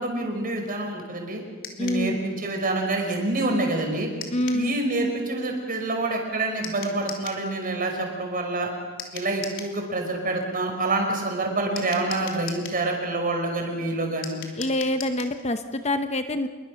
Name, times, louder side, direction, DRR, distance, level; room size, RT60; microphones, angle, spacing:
voice 1, 0.0-1.4 1.8-4.1 4.5-8.7 9.1-14.3, right 2 dB, 40° right, 2 dB, 5.5 m, -27 dB
sound 1, 1.6-2.1 4.2-4.7 6.6-7.4 9.0-9.8 11.8-12.8 14.2-15.4, left 7 dB, 60° left, 3.2 m, -38 dB
voice 2, 1.8-2.2 4.3-4.7 14.6-16.5, left 1 dB, 30° left, 8 dB, 0.9 m, -26 dB
28.0 x 23.0 x 6.5 m, 1.5 s
head